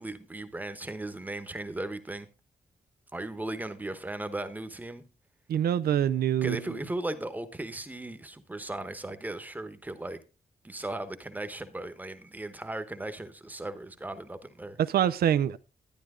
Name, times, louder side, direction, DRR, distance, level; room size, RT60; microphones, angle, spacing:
voice 1, 0.0-2.3 3.1-5.0 6.4-10.2 10.6-14.8, right 2 dB, 10° right, 1.0 m, -37 dB
voice 2, 5.5-6.6 14.8-15.6, right 10 dB, 85° right, 0.5 m, -25 dB
12.0 x 10.5 x 3.7 m
wide cardioid pair, 175°, 16 cm